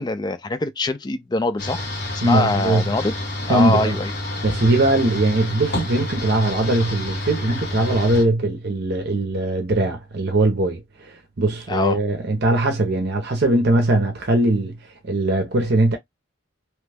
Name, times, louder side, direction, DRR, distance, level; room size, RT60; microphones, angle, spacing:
voice 1, 0.0-1.9 2.1-3.1 3.5-4.1 11.7-12.0, left 2 dB, 20° left, 0.3 m, -23 dB
sound 1, 1.6-8.2, left 1 dB, 50° left, 1.2 m, -29 dB
voice 2, 2.2-2.8 3.5-4.0 4.4-14.7 15.0-16.0, right 2 dB, 50° right, 0.7 m, -20 dB
3.0 x 2.2 x 3.3 m
head